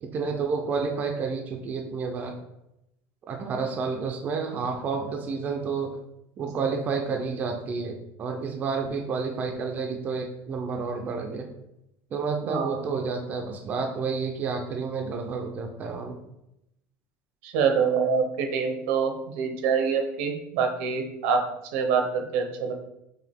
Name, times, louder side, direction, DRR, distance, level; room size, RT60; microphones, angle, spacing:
voice 1, 0.0-2.4 3.3-6.0 6.4-11.5 12.1-16.2, right 5 dB, 25° right, 3 dB, 0.4 m, -30 dB
voice 2, 12.5-12.8 17.4-21.5 21.7-22.7, right 6 dB, 80° right, 5 dB, 0.8 m, -25 dB
4.8 x 3.2 x 3.5 m, 0.84 s
cardioid pair, 180°, 7 cm